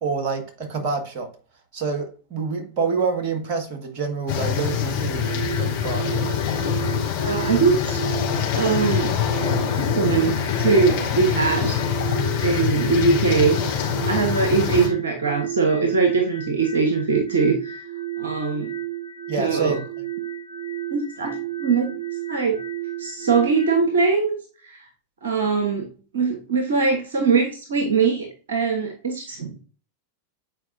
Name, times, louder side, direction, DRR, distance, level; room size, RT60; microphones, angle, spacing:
voice 1, 0.0-1.3 1.7-6.1 19.3-19.8, right 4 dB, 45° right, 1.6 m, -27 dB
sound 1, 4.3-14.9, left 8 dB, 45° left, 2.3 m, -24 dB
sound 2, 5.1-23.7, right 11 dB, 85° right, 0.8 m, -32 dB
voice 2, 7.2-8.0 8.5-9.2 9.8-11.8 12.4-13.6 14.0-17.8 18.2-18.7 19.4-19.8 20.9-22.0 22.3-22.6 23.0-24.4 24.6-24.9 25.2-29.6, right 4 dB, 65° right, 1.1 m, -22 dB
8.0 x 4.6 x 2.6 m
figure-of-eight pair, 90°, 0 cm